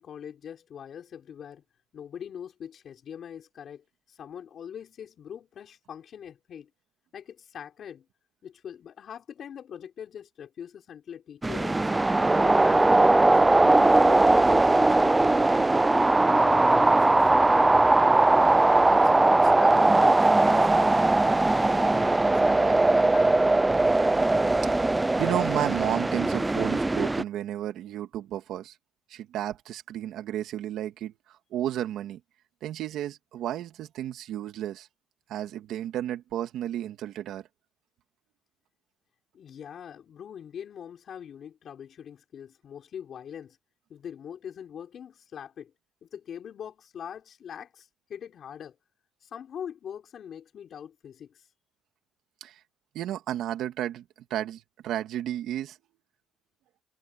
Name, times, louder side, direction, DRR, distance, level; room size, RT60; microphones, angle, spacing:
voice 1, 0.0-1.6 1.9-6.7 7.1-8.1 8.4-12.1 12.4-13.4 13.8-15.8 16.3-18.5 18.9-21.1 21.6-23.6 23.8-24.0 39.3-43.6 43.9-45.7 46.0-48.8 49.2-51.5, left 8 dB, 55° left, 4.6 m, -42 dB
sound 1, 11.4-27.2, right 2 dB, 15° right, 0.4 m, -20 dB
voice 2, 25.2-28.8 29.1-31.1 31.5-32.2 32.6-34.9 35.3-37.5 52.4-52.6 52.9-54.0 54.3-55.8, right 12 dB, 75° right, 2.3 m, -32 dB
cardioid pair, 95°, 0 cm